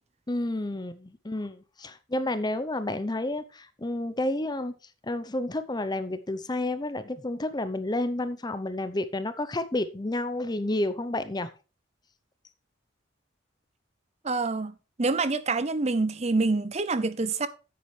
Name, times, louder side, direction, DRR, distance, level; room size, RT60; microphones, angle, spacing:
voice 1, 0.3-4.7 5.0-11.5, left 1 dB, 20° left, 0.6 m, -30 dB
voice 2, 14.2-17.5, right 3 dB, 35° right, 0.6 m, -27 dB
10.0 x 8.5 x 3.2 m
head